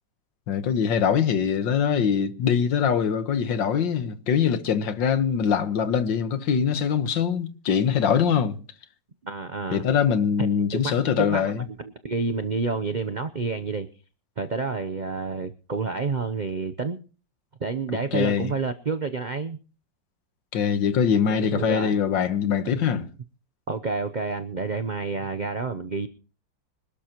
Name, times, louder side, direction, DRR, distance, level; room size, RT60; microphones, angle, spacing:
voice 1, 0.5-8.6 9.7-11.6 18.1-18.5 20.5-23.1, left 7 dB, 80° left, 1.9 m, -23 dB
voice 2, 9.2-9.8 10.4-13.9 14.4-17.0 17.6-19.6 21.5-22.0 23.7-26.1, right 4 dB, 65° right, 0.4 m, -29 dB
25.5 x 12.0 x 2.9 m
omnidirectional pair, 2.0 m